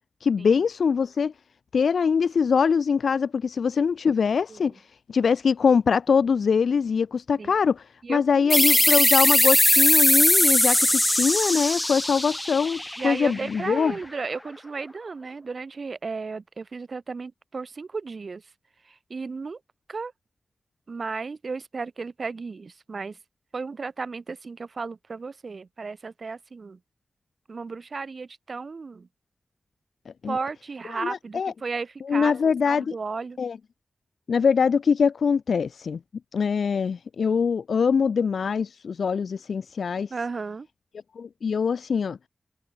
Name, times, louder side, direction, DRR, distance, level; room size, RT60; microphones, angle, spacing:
voice 1, 0.2-1.3 1.7-13.9 30.2-30.4 31.0-31.5 32.1-32.9 33.4-33.6 34.3-36.0 36.3-40.1 41.2-42.2, left 6 dB, 90° left, 0.8 m, -23 dB
voice 2, 8.0-8.7 13.0-18.5 18.8-19.6 19.9-20.1 20.9-23.2 23.5-26.8 27.5-29.1 30.3-32.3 32.6-33.4 40.1-40.7, right 4 dB, 65° right, 3.0 m, -34 dB
sound 1, 8.5-13.8, left 1 dB, 15° left, 0.6 m, -20 dB
cardioid pair, 50°, 0 cm